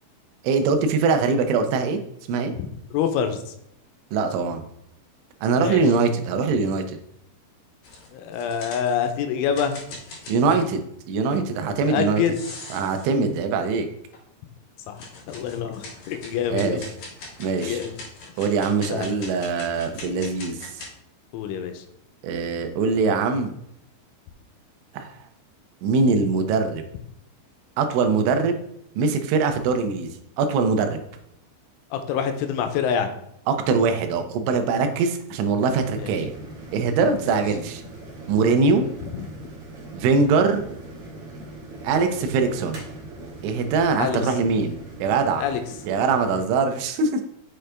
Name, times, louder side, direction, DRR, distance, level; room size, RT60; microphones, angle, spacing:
voice 1, 0.4-2.0 2.3-2.5 4.1-4.6 5.4-7.0 10.3-10.8 11.1-12.2 12.7-13.9 16.5-16.8 17.4-17.8 18.4-20.7 22.2-23.5 24.9-25.1 25.8-26.8 27.8-28.6 29.0-30.1 30.4-31.0 33.5-36.3 36.7-37.8 38.3-38.9 39.9-40.6 41.8-42.9 43.4-44.7 45.0-45.4 45.9-47.2, right 4 dB, 80° right, 6 dB, 3.3 m, -22 dB
voice 2, 2.9-3.4 5.6-5.8 8.1-9.8 11.6-12.4 14.9-15.0 15.3-16.9 17.6-17.9 18.9-19.1 21.3-21.8 31.9-33.1 36.0-36.1 37.3-37.4 39.1-39.3 44.0-44.2 45.4-45.6, left 8 dB, 90° left, 7 dB, 3.1 m, -26 dB
sound 1, 7.8-9.1 9.5-10.7 12.3-13.3 14.1-14.2 15.0-20.9, left 3 dB, 55° left, 3.5 m, -41 dB
sound 2, 35.6-46.5, right 2 dB, 55° right, 1.6 m, -40 dB
7.1 x 6.5 x 3.4 m, 0.75 s
omnidirectional pair, 5.5 m